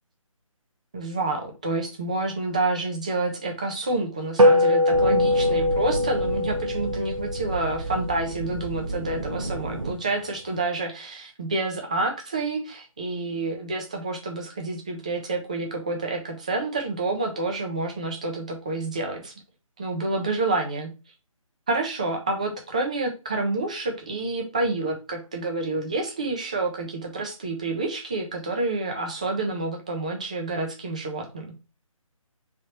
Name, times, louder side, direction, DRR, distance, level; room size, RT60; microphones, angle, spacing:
voice 1, 0.9-19.3 19.8-20.9 21.7-31.5, right 2 dB, 15° right, 2 dB, 0.4 m, -28 dB
sound 1, 4.4-9.0, left 1 dB, 65° right, 1.0 m, -22 dB
sound 2, 4.9-9.9, right 2 dB, 50° right, 1.3 m, -32 dB
3.2 x 2.7 x 4.2 m, 0.30 s
figure-of-eight pair, 160°, 18 cm